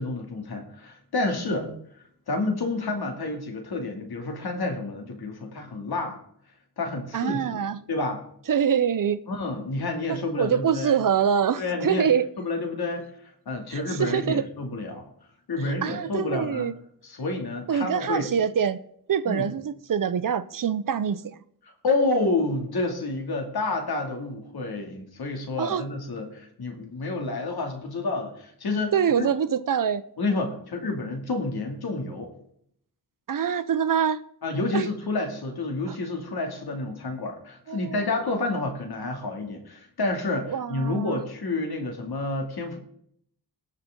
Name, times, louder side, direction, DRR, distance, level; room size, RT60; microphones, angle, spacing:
voice 1, 0.0-1.7 2.3-6.2 6.8-7.6 7.9-8.2 9.3-11.0 11.6-12.1 12.4-15.0 15.5-16.7 17.0-18.3 19.3-19.5 21.6-29.3 30.2-32.3 34.4-42.8, left 2 dB, 75° left, 2.7 m, -29 dB
voice 2, 7.1-7.8 8.5-9.2 10.1-12.3 13.7-14.5 15.8-16.7 17.7-18.8 19.1-21.2 25.6-25.8 28.9-30.0 33.3-34.2 34.7-34.9 35.9-36.0 37.7-38.0 40.5-41.2, right 8 dB, 60° right, 0.7 m, -25 dB
19.0 x 6.7 x 3.8 m
wide cardioid pair, 105°, 38 cm